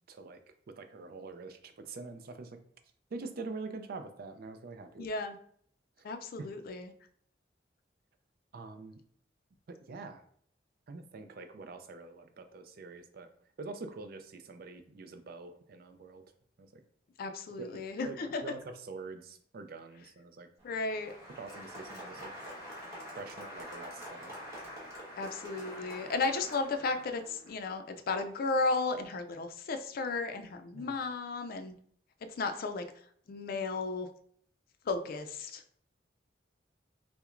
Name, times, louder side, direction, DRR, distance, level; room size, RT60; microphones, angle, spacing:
voice 1, 0.1-0.4 0.7-2.6 3.1-5.1 6.4-6.5 8.5-9.0 9.7-10.2 10.9-13.3 13.6-16.2 16.6-16.8 17.6-18.2 18.4-20.5 21.3-22.3 23.1-24.4 30.7-30.9, right 3 dB, 55° right, 8 dB, 0.4 m, -45 dB
voice 2, 5.0-5.4 6.0-6.9 17.2-18.4 20.6-21.1 25.2-31.8 32.4-32.8 33.3-34.1 34.9-35.6, left 3 dB, 55° left, 8 dB, 0.4 m, -34 dB
Applause, 20.6-27.5, equal, 15° right, 1.2 m, -46 dB
5.7 x 2.1 x 2.5 m, 0.62 s
head